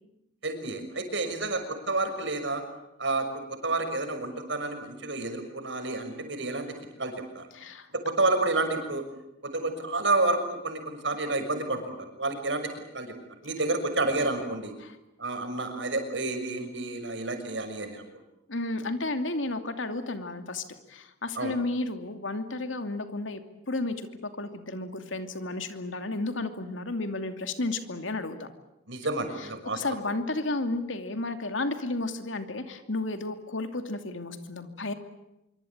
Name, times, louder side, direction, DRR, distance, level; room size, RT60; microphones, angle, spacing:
voice 1, 0.4-2.6 3.0-6.7 7.0-7.5 7.9-9.0 9.4-12.7 12.9-13.1 13.4-14.7 15.2-18.0 21.4-21.5 28.9-29.8, right 2 dB, 65° right, 6 dB, 6.3 m, -29 dB
voice 2, 7.5-7.9 14.8-14.9 18.5-23.4 23.7-28.5 29.4-29.5 29.7-34.9, left 2 dB, 80° left, 8 dB, 2.7 m, -32 dB
26.0 x 25.0 x 8.8 m, 0.88 s
head